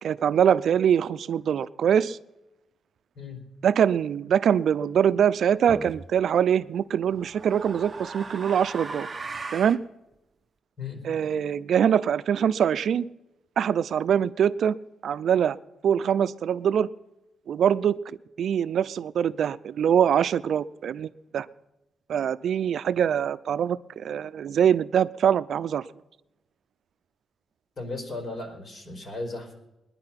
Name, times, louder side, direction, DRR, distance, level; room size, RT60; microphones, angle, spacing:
voice 1, 0.0-2.2 3.6-9.1 9.5-9.8 11.0-13.1 13.6-14.8 15.0-15.6 15.8-16.9 17.5-21.5 22.1-25.8, right 8 dB, 60° right, 15 dB, 0.5 m, -23 dB
sound 1, 5.7-6.1 7.1-9.8, right 3 dB, 20° right, 1.0 m, -38 dB
voice 2, 27.8-29.5, left 3 dB, 35° left, 3 dB, 4.3 m, -36 dB
21.0 x 10.5 x 5.9 m, 0.95 s
wide cardioid pair, 150°, 0 cm